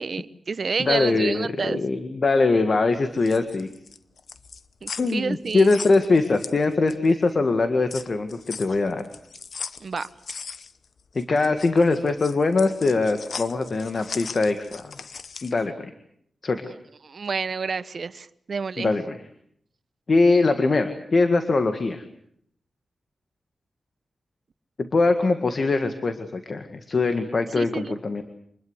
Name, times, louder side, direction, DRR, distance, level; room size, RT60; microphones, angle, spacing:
voice 1, 0.0-1.8 4.8-5.8 9.8-10.1 17.0-18.9 27.6-28.0, right 5 dB, 60° right, 14 dB, 1.1 m, -29 dB
voice 2, 0.8-3.7 5.0-9.1 11.1-15.0 15.4-15.9 16.4-16.6 18.8-19.2 20.1-22.0 24.8-28.2, left 3 dB, 55° left, 8 dB, 1.9 m, -22 dB
sound 1, 3.0-7.2 7.5-15.6, left 5 dB, 70° left, 1.0 m, -39 dB
26.0 x 21.0 x 8.2 m, 0.69 s
cardioid pair, 75°, 0 cm